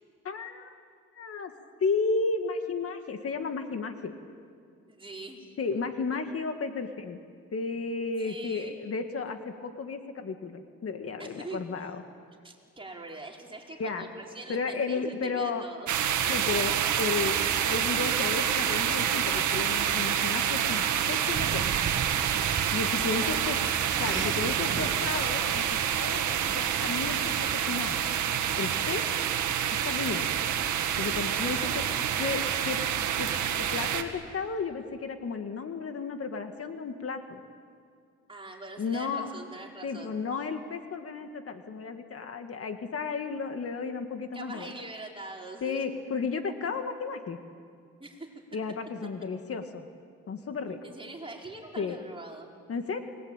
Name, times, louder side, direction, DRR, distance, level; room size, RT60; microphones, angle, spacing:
voice 1, 0.2-0.7 1.1-1.5 1.8-4.1 5.6-7.2 7.5-12.0 13.8-14.1 14.5-15.7 16.3-21.7 22.7-23.6 24.0-28.1 28.6-29.2 29.8-30.3 31.0-32.8 33.2-33.3 33.5-37.4 38.8-39.3 39.8-44.7 45.6-47.4 48.5-49.9 50.3-50.8 51.8-52.0 52.7-53.0, left 4 dB, 50° left, 6 dB, 2.0 m, -33 dB
voice 2, 4.9-5.5 8.2-8.8 11.2-11.6 12.4-15.9 23.1-23.5 24.0-24.7 31.3-31.9 38.3-40.2 44.3-45.8 48.0-48.3 50.8-52.5, right 2 dB, 15° right, -1 dB, 5.0 m, -43 dB
sound 1, 15.9-34.0, right 9 dB, 75° right, 2.0 m, -28 dB
sound 2, 21.3-27.6, right 7 dB, 40° right, 1.0 m, -39 dB
28.5 x 21.5 x 9.1 m, 2.2 s
cardioid pair, 90°, 30 cm